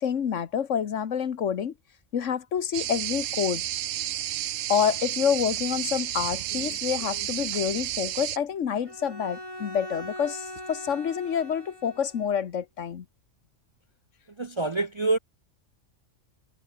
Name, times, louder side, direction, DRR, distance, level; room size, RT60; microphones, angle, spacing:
voice 1, 0.0-1.7 2.1-3.6 4.7-13.0, left 8 dB, 70° left, 1.4 m, -28 dB
sound 1, 2.7-8.4, right 13 dB, 80° right, 1.0 m, -31 dB
Bowed string instrument, 8.8-12.4, left 1 dB, 25° left, 6.9 m, -41 dB
voice 2, 14.4-15.2, right 3 dB, 35° right, 0.5 m, -26 dB
omnidirectional pair, 1.3 m